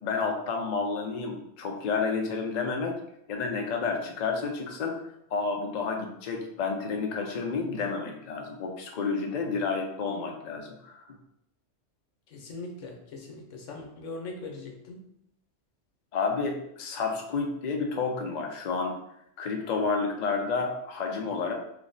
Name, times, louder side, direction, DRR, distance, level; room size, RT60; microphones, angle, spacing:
voice 1, 0.0-3.0 3.3-4.9 5.3-11.0 16.1-18.9 19.4-21.5, left 4 dB, 55° left, 1 dB, 0.5 m, -30 dB
voice 2, 12.3-15.0, left 3 dB, 80° left, 1 dB, 1.1 m, -40 dB
3.3 x 2.0 x 3.8 m, 0.76 s
omnidirectional pair, 1.3 m